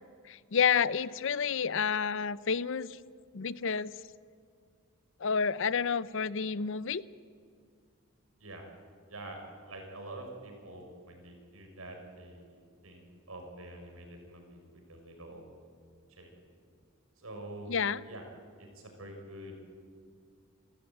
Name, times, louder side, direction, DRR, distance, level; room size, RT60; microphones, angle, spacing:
voice 1, 0.3-3.0 3.3-3.9 5.2-7.0 17.7-18.0, left 6 dB, 65° left, 18 dB, 0.6 m, -29 dB
voice 2, 9.7-15.5 16.1-16.3 17.2-17.7 18.0-18.2 18.6-19.5, right 1 dB, 85° right, 3 dB, 5.8 m, -46 dB
28.5 x 14.0 x 8.9 m, 2.2 s
head